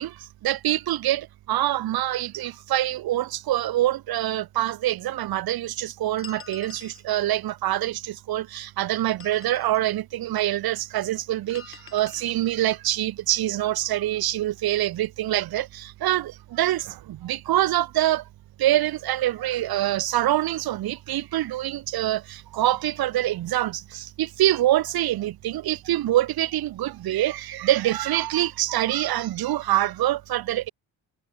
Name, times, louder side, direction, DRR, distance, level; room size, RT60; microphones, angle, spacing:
voice 1, 0.0-18.2 18.6-30.7, right 14 dB, 75° right, 4.6 m, -25 dB
sound 1, 6.2-7.0 9.0-9.8 11.5-12.3, left 6 dB, 35° left, 7.8 m, -45 dB
cardioid pair, 125°, 37 cm